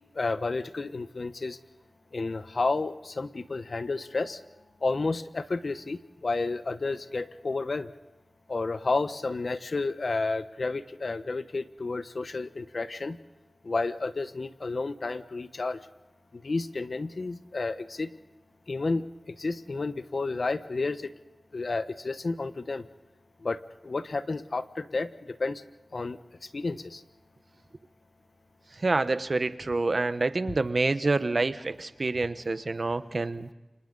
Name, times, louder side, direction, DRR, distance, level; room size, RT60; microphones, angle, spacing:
voice 1, 0.1-1.6 2.1-4.4 4.8-7.9 8.5-13.2 13.6-15.8 16.3-18.1 18.7-21.1 21.5-22.8 23.4-25.6 25.9-26.2 26.5-27.0, left 3 dB, 60° left, 11 dB, 1.1 m, -31 dB
voice 2, 28.8-33.5, right 3 dB, 50° right, 12 dB, 1.1 m, -27 dB
30.0 x 26.5 x 4.1 m, 1.0 s
wide cardioid pair, 75°, 0 cm